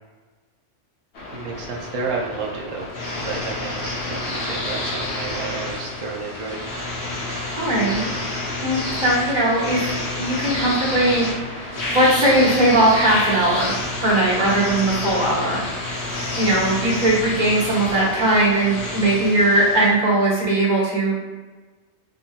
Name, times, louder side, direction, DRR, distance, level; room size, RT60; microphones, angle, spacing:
sound 1, 1.1-19.9, left 2 dB, 60° left, 1.0 m, -29 dB
voice 1, 1.3-2.9 3.1-7.0, right 4 dB, 65° right, -1 dB, 0.3 m, -31 dB
voice 2, 7.6-8.1 8.6-11.2 11.9-15.7 16.4-21.2, right 1 dB, 40° right, -6 dB, 1.3 m, -19 dB
3.8 x 3.7 x 2.3 m, 1.3 s
omnidirectional pair, 1.2 m